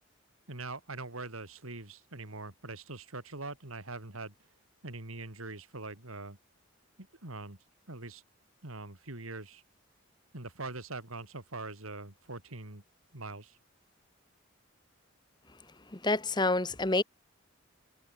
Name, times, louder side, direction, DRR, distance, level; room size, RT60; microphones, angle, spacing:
voice 1, 0.5-4.3 4.8-6.4 7.0-7.6 7.9-8.2 8.6-9.6 10.3-12.8 13.1-13.6, right 2 dB, 85° right, 4.1 m, -43 dB
voice 2, 15.9-17.0, left 2 dB, 20° left, 1.2 m, -28 dB
head